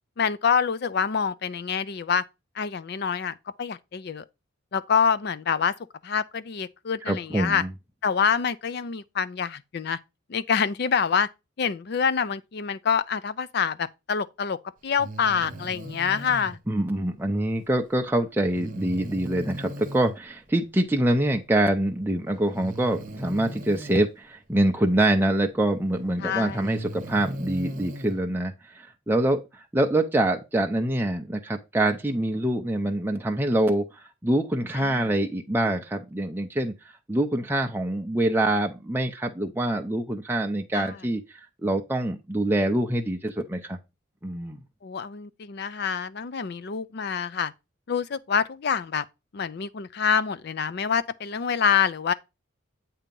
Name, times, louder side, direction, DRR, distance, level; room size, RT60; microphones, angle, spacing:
voice 1, 0.2-2.2 2.6-4.2 4.7-5.7 6.0-7.6 8.0-10.0 10.3-11.3 11.6-16.6 26.2-26.7 34.7-35.1 40.7-41.0 44.8-47.5 47.9-49.0 49.3-52.1, left 6 dB, 50° left, 0.4 m, -26 dB
voice 2, 7.1-7.7 16.7-33.9 34.2-36.7 37.1-41.2 41.6-43.8 44.2-44.6, right 1 dB, 10° right, 0.5 m, -25 dB
Breathing, 15.0-16.6 18.5-20.2 21.5-21.6 22.5-24.1 25.6-25.7 26.4-28.2, right 1 dB, 40° right, 0.9 m, -38 dB
8.4 x 2.9 x 5.2 m
head